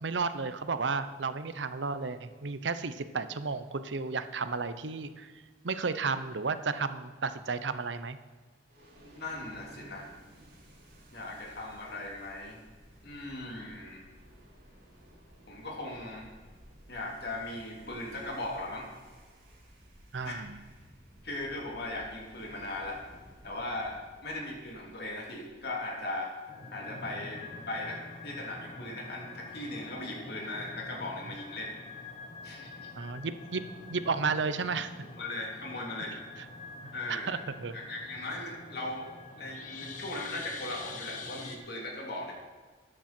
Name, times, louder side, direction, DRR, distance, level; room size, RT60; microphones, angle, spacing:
voice 1, 0.0-5.3 5.6-8.2 20.1-20.5 33.0-33.6 33.9-35.1 36.8-37.7, right 4 dB, 90° right, 12 dB, 0.7 m, -33 dB
sound 1, 8.7-26.1, equal, 55° right, 4.4 m, -56 dB
voice 2, 9.0-10.1 11.1-12.6 13.0-14.0 15.5-16.3 16.9-18.9 20.2-20.4 21.2-23.0 23.4-24.0 24.2-26.3 26.7-31.8 32.4-32.9 35.0-36.1 36.9-37.3 37.7-39.1 39.4-42.3, left 2 dB, 65° left, -1 dB, 2.9 m, -38 dB
sound 2, 26.4-41.6, left 3 dB, 45° left, 1.4 m, -46 dB
13.0 x 10.0 x 4.4 m, 1.4 s
head